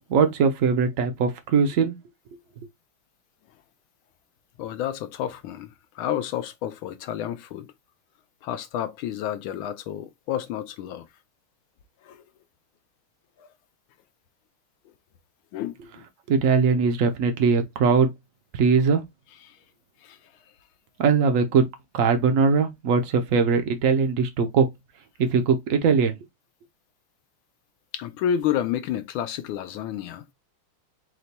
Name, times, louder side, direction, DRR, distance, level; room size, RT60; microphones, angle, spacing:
voice 1, 0.1-1.9 16.3-18.1 18.5-19.0 21.0-21.6 21.9-24.7 25.2-26.2, right 5 dB, 90° right, 0.7 m, -21 dB
voice 2, 4.6-7.7 8.4-11.1 12.0-12.2 13.4-13.5 15.5-16.0 19.4-19.6 20.0-20.2 27.9-30.2, left 10 dB, 80° left, 1.4 m, -30 dB
4.8 x 2.2 x 4.0 m
omnidirectional pair, 2.3 m